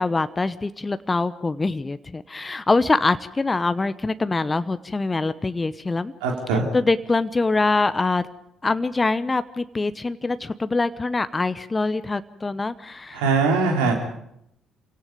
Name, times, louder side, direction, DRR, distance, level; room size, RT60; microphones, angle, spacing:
voice 1, 0.0-6.1 6.7-8.2 8.6-13.2, left 3 dB, 25° left, 13 dB, 1.0 m, -24 dB
voice 2, 6.2-6.7 13.1-13.9, right 4 dB, 75° right, 2 dB, 3.3 m, -21 dB
28.0 x 17.5 x 5.3 m, 0.75 s
figure-of-eight pair, 45°, 0 cm